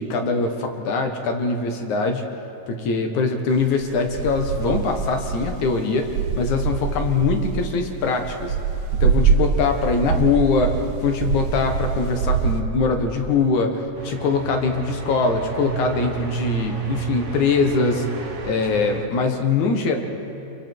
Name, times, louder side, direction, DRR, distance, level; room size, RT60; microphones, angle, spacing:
voice 1, 0.0-2.2 2.7-6.1 6.4-8.6 9.0-10.8 11.0-18.1 18.4-20.0, left 4 dB, 75° left, 4 dB, 2.9 m, -22 dB
sound 1, 3.6-12.6, right 6 dB, 75° right, 2.3 m, -24 dB
sound 2, 13.9-19.1, right 6 dB, 40° right, 1.2 m, -31 dB
28.5 x 22.5 x 4.6 m, 2.9 s
omnidirectional pair, 3.4 m